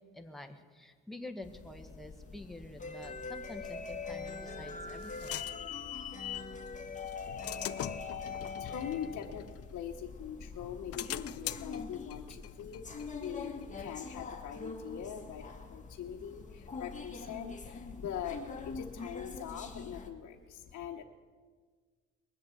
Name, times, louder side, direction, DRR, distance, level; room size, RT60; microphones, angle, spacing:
voice 1, 0.1-5.4, left 1 dB, ahead, 4 dB, 1.4 m, -48 dB
sound 1, 1.4-20.1, left 4 dB, 25° left, 1.7 m, -44 dB
sound 2, 4.3-6.5 7.1-10.2 10.6-14.0, left 13 dB, 50° left, 0.4 m, -43 dB
voice 2, 7.9-8.2 8.6-21.0, left 8 dB, 65° left, 0 dB, 1.1 m, -42 dB
21.0 x 7.8 x 7.5 m, 1.6 s
cardioid pair, 90°, 30 cm